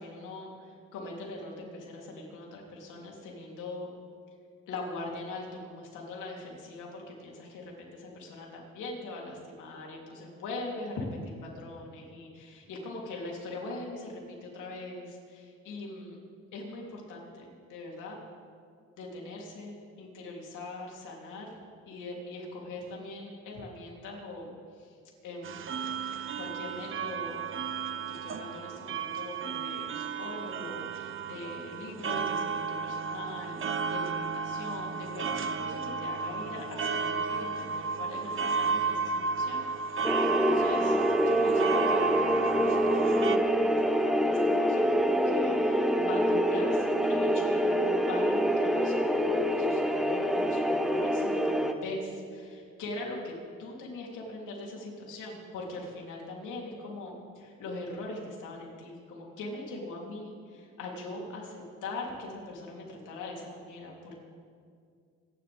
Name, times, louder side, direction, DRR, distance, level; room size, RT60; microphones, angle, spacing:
voice 1, 0.0-3.9 4.7-16.2 16.5-18.2 19.0-21.6 21.9-25.0 25.2-25.6 26.4-27.5 28.1-41.0 41.2-53.3 53.6-64.2, left 2 dB, 85° left, -2 dB, 3.4 m, -41 dB
sound 1, 25.4-43.4, right 5 dB, 45° right, 0.8 m, -33 dB
sound 2, 40.0-51.7, equal, ahead, 1.0 m, -26 dB
26.0 x 11.5 x 3.6 m, 2.2 s
cardioid pair, 90°, 30 cm